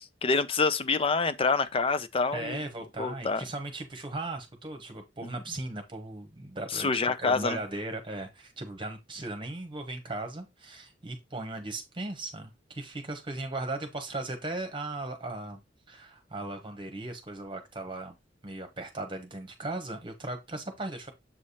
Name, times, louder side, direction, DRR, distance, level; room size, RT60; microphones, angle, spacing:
voice 1, 0.2-2.6 3.0-3.4 6.7-7.6, left 4 dB, 30° left, 0.5 m, -26 dB
voice 2, 2.3-6.9 7.2-15.6 15.9-18.1 18.4-21.1, right 2 dB, 30° right, 1.1 m, -37 dB
7.5 x 3.4 x 4.2 m
head